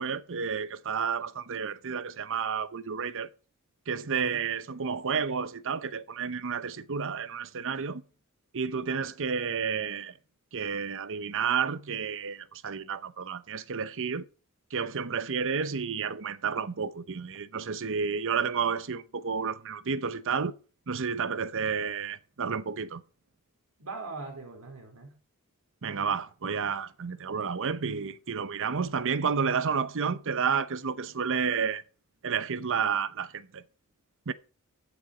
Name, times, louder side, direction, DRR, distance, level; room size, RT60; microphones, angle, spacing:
voice 1, 0.0-3.3 3.9-8.0 8.5-10.1 10.5-14.2 14.7-20.5 20.9-23.0 25.8-31.8 32.2-33.6 34.3-34.4, right 6 dB, 60° right, 0.8 m, -31 dB
voice 2, 4.0-4.5 23.8-25.2, right 3 dB, 75° right, 3.9 m, -41 dB
14.5 x 7.1 x 4.9 m
head